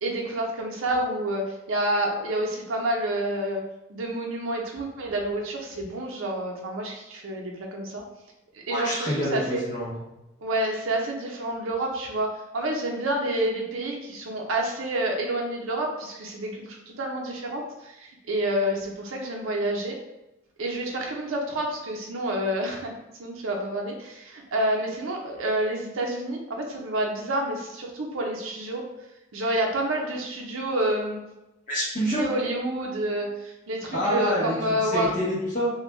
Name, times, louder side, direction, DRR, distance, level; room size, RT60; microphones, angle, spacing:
voice 1, 0.0-3.6 3.9-8.0 8.7-9.6 10.4-20.0 20.6-22.9 23.2-28.8 29.3-31.2 32.1-35.1, right 1 dB, 90° right, 1 dB, 0.6 m, -28 dB
voice 2, 8.7-9.9 31.7-32.3 33.9-34.6 34.9-35.7, equal, 40° left, -7 dB, 1.0 m, -27 dB
2.5 x 2.2 x 3.0 m, 0.94 s
head